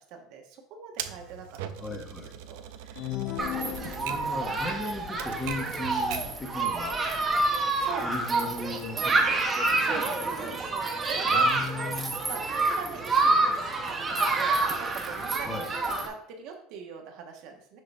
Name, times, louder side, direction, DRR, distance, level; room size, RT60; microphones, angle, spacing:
voice 1, 0.0-1.9 2.5-3.9 7.8-8.4 9.8-15.6 15.9-17.8, right 6 dB, 50° right, 3 dB, 1.3 m, -43 dB
Typewriter, 1.0-6.4, right 9 dB, 75° right, 0.6 m, -41 dB
voice 2, 1.8-2.4 4.0-6.9 8.0-9.5 11.3-12.1 15.5-15.7, left 2 dB, 15° left, 2 dB, 1.0 m, -37 dB
sound 1, 3.0-4.5, left 15 dB, 40° left, 0.3 m, -35 dB
Human group actions, 3.4-16.1, right 3 dB, 15° right, 0.9 m, -27 dB
6.6 x 3.9 x 5.4 m, 0.66 s
cardioid pair, 165°, 0 cm